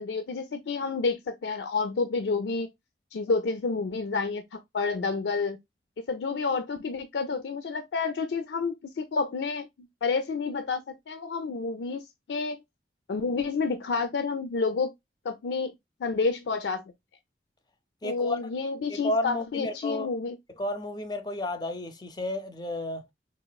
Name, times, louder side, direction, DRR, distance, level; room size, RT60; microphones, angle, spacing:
voice 1, 0.0-2.7 3.1-5.6 6.1-12.6 13.1-14.9 15.2-15.7 16.0-16.8 18.0-20.4, left 4 dB, 80° left, 0.4 m, -29 dB
voice 2, 18.0-18.4 18.9-20.1 20.6-23.0, left 1 dB, 25° left, 0.5 m, -32 dB
4.1 x 2.4 x 2.3 m
head